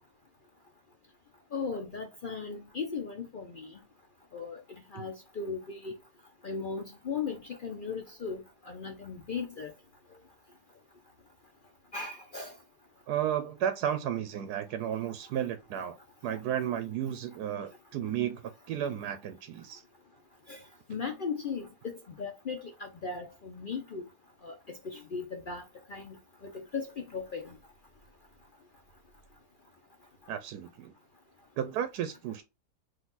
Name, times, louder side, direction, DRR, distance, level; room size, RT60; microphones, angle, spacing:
voice 1, 1.5-3.7 4.3-4.6 4.9-5.9 6.4-9.7 11.9-12.5 20.5-20.6 20.9-21.7 22.2-24.1 24.4-25.6 25.9-26.2 26.4-27.6, left 5 dB, 55° left, 0.5 m, -37 dB
voice 2, 13.1-16.0 16.2-19.8 30.3-30.9 31.6-32.4, right 10 dB, 80° right, 1.1 m, -33 dB
4.0 x 2.6 x 3.9 m
omnidirectional pair, 1.7 m